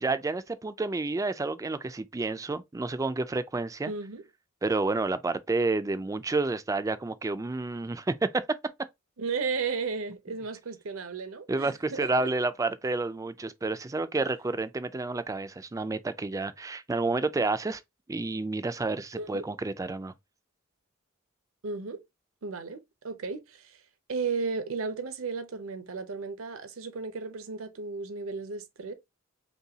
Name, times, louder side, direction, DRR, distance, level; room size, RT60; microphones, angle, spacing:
voice 1, 0.0-3.9 4.6-8.6 11.5-17.8 18.1-20.1, right 3 dB, 15° right, 0.3 m, -30 dB
voice 2, 3.9-4.2 9.2-12.1 19.2-19.5 21.6-22.0 22.4-23.8 24.1-28.9, right 4 dB, 75° right, 0.7 m, -34 dB
5.4 x 2.3 x 2.8 m
head